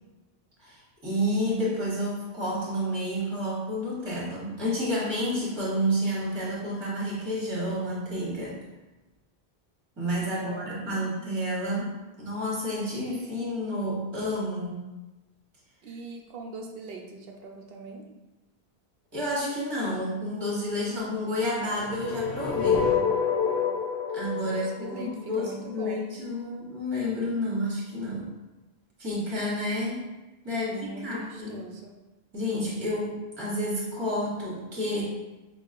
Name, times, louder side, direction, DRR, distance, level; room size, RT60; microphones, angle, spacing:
voice 1, 0.6-8.6 10.0-11.9 12.2-14.8 19.1-22.9 24.1-28.3 29.0-30.1 30.4-31.6 32.3-35.0, equal, 25° right, -6 dB, 1.1 m, -30 dB
voice 2, 10.2-11.1 15.8-18.0 24.4-26.0 30.5-32.0, right 3 dB, 70° right, 1 dB, 0.8 m, -42 dB
sound 1, 21.8-25.8, left 6 dB, 80° left, 0.8 m, -27 dB
5.3 x 2.3 x 2.5 m, 1.1 s
omnidirectional pair, 1.1 m